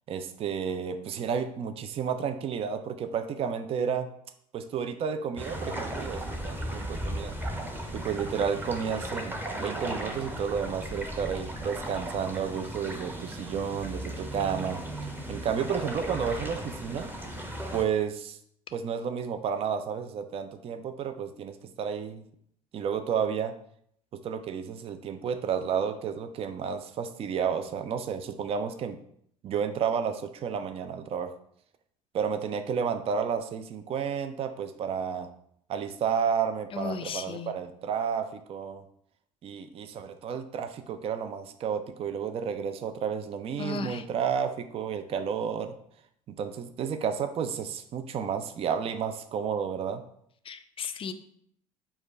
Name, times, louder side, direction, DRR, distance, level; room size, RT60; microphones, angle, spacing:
voice 1, 0.1-4.1 4.5-7.4 7.9-17.1 17.7-18.4 18.7-22.2 22.7-23.5 24.1-29.0 29.4-31.3 32.1-35.3 35.7-38.8 39.4-45.7 46.3-50.0, right 7 dB, 35° right, 9 dB, 0.4 m, -31 dB
sound 1, 5.4-17.8, right 1 dB, 10° right, 0.7 m, -36 dB
voice 2, 36.7-37.5 43.6-44.0 50.5-51.1, left 5 dB, 30° left, 9 dB, 0.4 m, -35 dB
4.7 x 2.2 x 4.6 m, 0.68 s
figure-of-eight pair, 60°, 18 cm